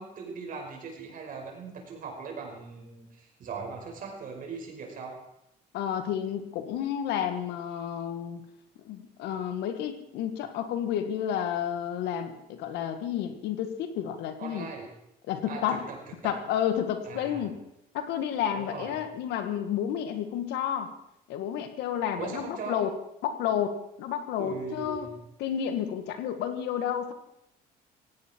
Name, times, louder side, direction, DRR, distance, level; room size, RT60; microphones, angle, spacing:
voice 1, 0.0-5.2 14.4-14.9 15.5-16.3 17.0-17.5 18.6-18.9 22.2-22.8 24.4-25.2, right 5 dB, 55° right, 1 dB, 5.5 m, -39 dB
voice 2, 5.7-8.4 8.8-14.7 15.3-15.9 16.2-17.6 17.9-20.9 21.3-22.9 23.2-25.1 25.4-27.1, left 9 dB, 85° left, 8 dB, 1.8 m, -31 dB
17.5 x 17.0 x 4.6 m, 0.81 s
cardioid pair, 110°, 17 cm